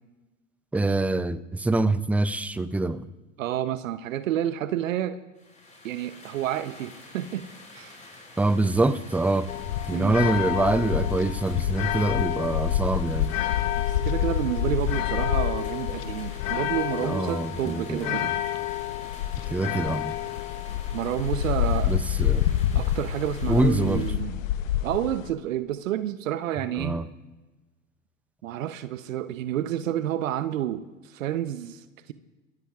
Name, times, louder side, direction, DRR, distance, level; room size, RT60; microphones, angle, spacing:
voice 1, 0.7-3.0 8.4-9.5 9.9-13.3 17.0-18.3 19.5-20.1 21.8-22.5 23.5-24.1 26.7-27.0, right 2 dB, 5° right, 14 dB, 0.4 m, -25 dB
voice 2, 3.4-5.2 5.8-7.4 7.7-8.0 9.9-10.2 13.8-18.4 20.9-21.9 22.7-24.4 24.8-27.0 28.4-32.1, right 11 dB, 75° right, 12 dB, 0.8 m, -30 dB
sound 1, 5.4-24.1, left 2 dB, 20° left, 6.0 m, -48 dB
sound 2, 9.5-25.3, left 12 dB, 75° left, 0.8 m, -27 dB
25.5 x 15.5 x 2.4 m, 1.2 s
hypercardioid pair, 95°, 39 cm